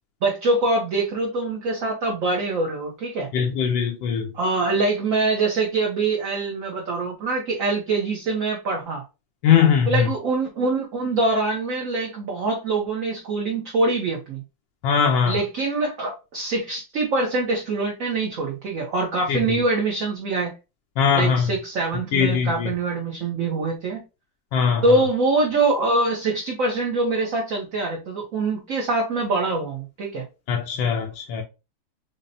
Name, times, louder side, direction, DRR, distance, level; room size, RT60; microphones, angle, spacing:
voice 1, 0.2-3.3 4.3-9.0 9.9-14.4 15.3-20.5 21.1-24.0 24.8-30.3, right 3 dB, 60° right, 0.9 m, -24 dB
voice 2, 3.3-4.3 9.4-10.1 14.8-15.4 19.3-19.6 21.0-21.5 22.1-22.7 24.5-25.0 30.5-31.4, left 7 dB, 80° left, 1.3 m, -21 dB
5.2 x 2.1 x 2.6 m
omnidirectional pair, 2.1 m